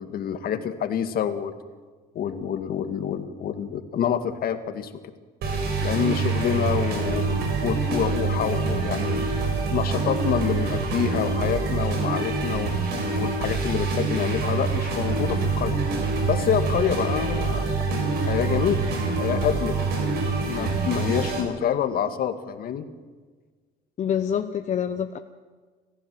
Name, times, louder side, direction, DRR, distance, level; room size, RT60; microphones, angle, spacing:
voice 1, 0.0-1.5 2.2-4.9 5.8-7.3 7.6-9.2 9.7-12.7 13.2-15.8 16.3-18.8 19.2-19.8 20.4-22.8, left 8 dB, 60° left, 8 dB, 2.1 m, -27 dB
sound 1, 5.4-21.4, right 4 dB, 75° right, 6.8 m, -26 dB
voice 2, 24.0-25.2, left 8 dB, 45° left, 8 dB, 1.0 m, -26 dB
29.0 x 15.0 x 7.7 m, 1.4 s
cardioid pair, 110°, 17 cm